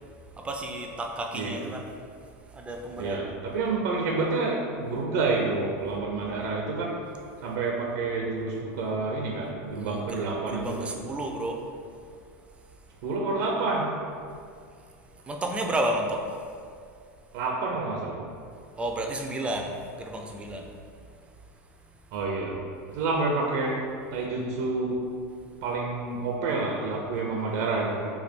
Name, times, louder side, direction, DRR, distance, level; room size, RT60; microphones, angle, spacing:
voice 1, 0.4-1.9 2.5-3.3 9.8-11.6 15.3-16.2 18.8-20.6, right 1 dB, 15° right, 2 dB, 0.4 m, -32 dB
voice 2, 3.0-7.1 7.4-10.9 13.0-14.0 17.3-18.2 22.1-25.1 25.6-28.1, right 3 dB, 70° right, -1 dB, 0.5 m, -29 dB
3.3 x 2.3 x 4.2 m, 2.3 s
supercardioid pair, 125°, 8 cm